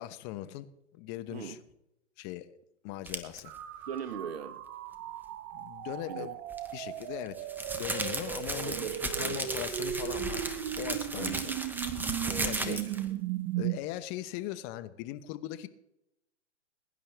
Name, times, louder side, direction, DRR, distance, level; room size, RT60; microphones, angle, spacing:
voice 1, 0.0-1.6 2.2-2.5 2.8-3.5 5.5-6.3 6.7-7.4 7.7-10.4 10.8-11.5 12.4-12.8 13.6-15.7, left 14 dB, 30° left, 0.9 m, -39 dB
voice 2, 1.3-1.6 3.9-4.6 6.1-6.3 8.4-9.4 11.2-11.6 12.3-13.1, right 7 dB, 60° right, 1.5 m, -41 dB
sound 1, 3.1-3.4 6.5-13.1, right 2 dB, 5° right, 1.1 m, -35 dB
sound 2, 3.5-13.8, right 13 dB, 30° right, 0.8 m, -37 dB
21.5 x 11.0 x 3.4 m
hypercardioid pair, 125°, 36 cm